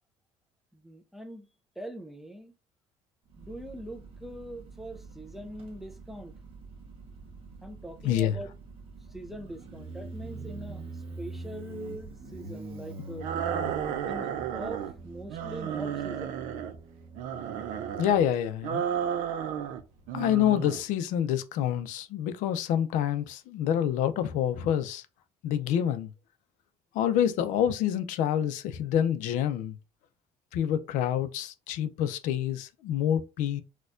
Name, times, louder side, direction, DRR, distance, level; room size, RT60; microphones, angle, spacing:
voice 1, 0.7-1.5 1.8-2.5 3.4-6.3 7.6-8.5 9.1-13.3 14.1-16.4, right 1 dB, ahead, 0.4 m, -42 dB
Motorcycle, 3.3-20.5, right 2 dB, 45° right, 0.8 m, -45 dB
voice 2, 8.0-8.4 18.0-18.9 20.1-25.1 25.4-26.1 26.9-29.7 30.5-33.6, left 10 dB, 75° left, 0.5 m, -27 dB
sound 1, 13.2-14.9 15.3-16.8 17.1-18.2 18.6-19.8 20.1-20.8, right 9 dB, 80° right, 0.5 m, -33 dB
4.3 x 2.3 x 2.4 m
cardioid pair, 160°, 13 cm